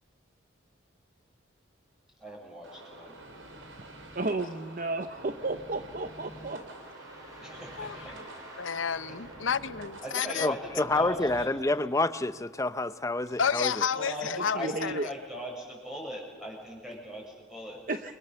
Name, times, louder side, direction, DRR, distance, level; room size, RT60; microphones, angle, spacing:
voice 1, 2.2-3.1 7.4-8.2 9.1-9.2 10.0-11.8 13.9-17.8, equal, 5° right, 7.1 m, -40 dB
sound 1, 2.6-11.4, right 1 dB, 85° right, 4.1 m, -47 dB
voice 2, 4.1-6.6 14.0-15.1 17.9-18.1, right 2 dB, 45° right, 0.8 m, -33 dB
sound 2, 6.2-12.2, right 1 dB, 20° right, 4.4 m, -52 dB
voice 3, 8.6-10.5 13.4-14.9, left 7 dB, 85° left, 0.8 m, -30 dB
voice 4, 10.4-13.8, left 2 dB, 15° left, 0.7 m, -28 dB
29.5 x 22.5 x 7.0 m
head